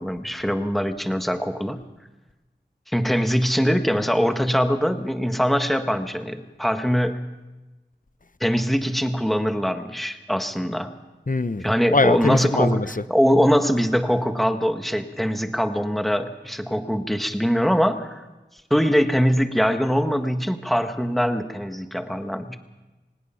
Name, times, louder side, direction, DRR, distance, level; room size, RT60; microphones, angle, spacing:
voice 1, 0.0-1.8 2.9-7.2 8.4-10.9 11.6-18.2 18.7-22.6, equal, ahead, 1.6 m, -22 dB
voice 2, 11.3-11.7 11.9-12.9, left 3 dB, 45° left, 0.8 m, -21 dB
24.0 x 19.5 x 5.7 m
wide cardioid pair, 40°, 20 cm